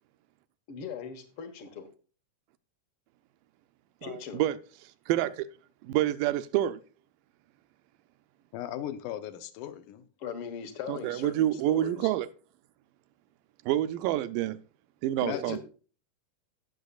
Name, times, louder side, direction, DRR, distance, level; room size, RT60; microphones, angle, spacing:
voice 1, 0.7-1.9 4.0-4.4 10.2-12.1 15.3-15.6, left 7 dB, 55° left, 1.6 m, -39 dB
voice 2, 4.0-4.6 5.1-5.5 5.8-6.8 10.9-12.3 13.7-14.6 15.0-15.6, right 13 dB, 85° right, 2.2 m, -28 dB
voice 3, 8.5-10.1 15.2-15.6, left 11 dB, 75° left, 2.2 m, -37 dB
17.0 x 6.7 x 2.4 m
omnidirectional pair, 3.8 m